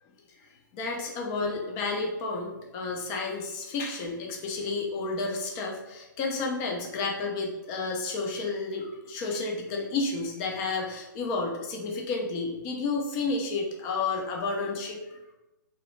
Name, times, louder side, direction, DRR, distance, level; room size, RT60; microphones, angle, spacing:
voice 1, 0.4-15.3, left 3 dB, 25° left, 1 dB, 0.4 m, -31 dB
2.3 x 2.0 x 3.0 m, 0.99 s
figure-of-eight pair, 125°, 11 cm